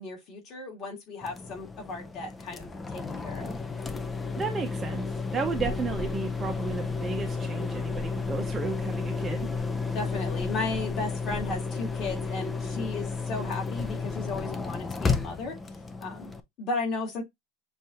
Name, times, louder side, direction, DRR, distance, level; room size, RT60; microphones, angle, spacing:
voice 1, 0.0-3.6 9.9-15.6 16.0-16.3 16.6-17.2, left 3 dB, 35° left, 2.3 m, -35 dB
sound 1, 1.2-16.4, left 4 dB, 10° left, 0.5 m, -32 dB
voice 2, 4.4-9.5, right 5 dB, 20° right, 0.8 m, -33 dB
6.6 x 2.7 x 3.0 m
supercardioid pair, 155°, 0 cm